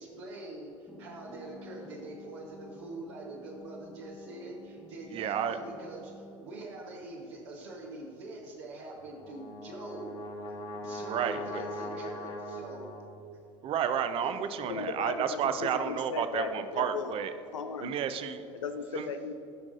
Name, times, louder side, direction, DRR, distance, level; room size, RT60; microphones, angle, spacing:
voice 1, 0.0-10.1 10.5-12.9 14.2-14.4 18.8-19.0, right 2 dB, 60° right, -2 dB, 1.1 m, -44 dB
sound 1, 0.9-6.8, left 1 dB, 10° left, 0.9 m, -50 dB
voice 2, 5.1-5.6 11.0-11.6 13.6-17.3 17.8-18.4 18.9-19.1, right 8 dB, 35° right, 10 dB, 0.6 m, -31 dB
Brass instrument, 9.0-13.3, left 1 dB, 35° left, 1.3 m, -40 dB
voice 3, 14.6-17.1 17.5-17.9 18.5-19.3, left 6 dB, 75° left, 7 dB, 0.4 m, -36 dB
15.5 x 6.1 x 2.5 m, 2.7 s
figure-of-eight pair, 70°, 16 cm